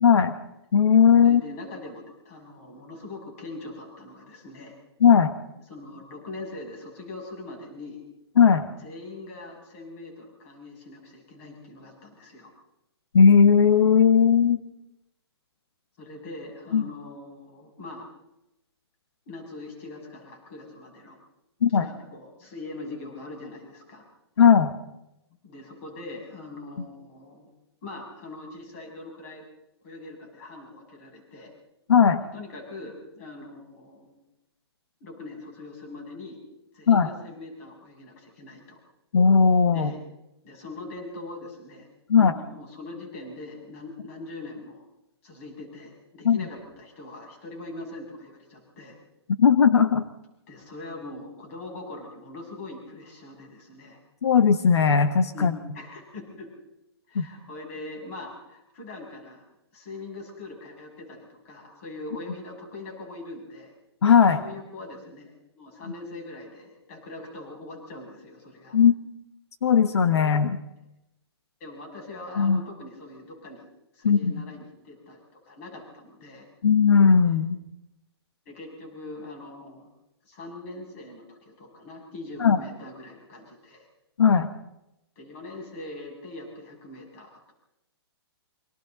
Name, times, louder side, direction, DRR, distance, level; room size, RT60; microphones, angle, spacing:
voice 1, 0.0-0.3 0.7-1.4 5.0-5.3 8.4-8.7 13.1-14.6 16.7-16.9 21.6-21.9 24.4-24.7 31.9-32.2 36.9-37.1 39.1-39.9 42.1-42.3 46.2-46.5 49.4-50.0 54.2-55.5 57.1-57.3 64.0-64.4 68.7-69.0 69.6-70.6 72.4-72.6 74.0-74.4 76.6-77.6 82.4-82.6 84.2-84.5, left 6 dB, 85° left, 9 dB, 1.4 m, -18 dB
voice 2, 1.2-4.8 5.7-8.0 8.6-12.5 16.0-18.1 19.3-21.2 21.7-24.0 25.4-27.5 27.8-29.5 29.8-31.5 32.3-34.2 35.0-36.4 36.7-38.8 39.7-40.0 40.4-44.8 45.2-48.9 50.5-54.0 55.3-55.5 55.7-56.5 57.1-59.4 59.7-63.7 64.3-68.8 71.6-73.7 73.9-76.5 78.5-79.9 80.2-83.9 85.2-87.3, left 2 dB, 30° left, 0 dB, 7.2 m, -42 dB
29.0 x 24.5 x 4.0 m, 0.90 s
hypercardioid pair, 170°, 14 cm